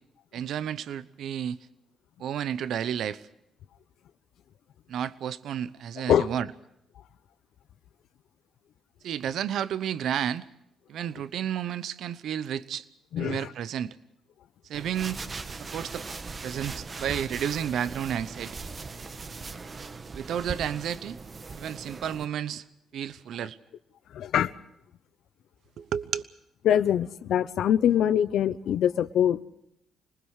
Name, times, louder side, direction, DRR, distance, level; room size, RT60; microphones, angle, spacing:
voice 1, 0.3-1.6 2.2-3.2 4.9-6.5 9.0-10.4 10.9-12.8 13.2-13.9 14.7-15.2 15.7-16.0 16.4-18.6 20.1-21.2 21.6-22.6 22.9-23.6 25.8-26.2, right 9 dB, 75° right, 0.9 m, -31 dB
voice 2, 13.1-13.5 24.1-24.5 26.6-29.4, left 10 dB, 75° left, 0.9 m, -23 dB
sound 1, 14.7-22.2, right 4 dB, 35° right, 1.3 m, -39 dB
26.0 x 19.5 x 6.5 m
cardioid pair, 90°, 0 cm